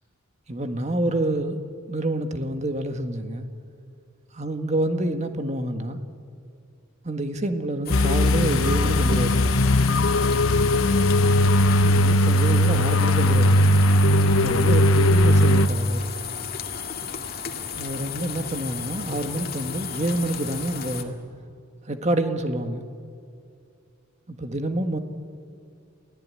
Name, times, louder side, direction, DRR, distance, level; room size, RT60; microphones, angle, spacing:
voice 1, 0.5-1.6 1.9-3.5 4.3-6.0 7.0-9.5 11.8-13.8 14.4-16.1 17.7-21.2 21.9-22.8 24.3-25.0, right 1 dB, 35° right, 6 dB, 1.7 m, -27 dB
sound 1, 7.9-15.7, left 1 dB, 85° left, 0.8 m, -19 dB
sound 2, 7.9-21.0, left 7 dB, 45° left, 2.0 m, -34 dB
29.0 x 17.5 x 9.8 m, 2.4 s
head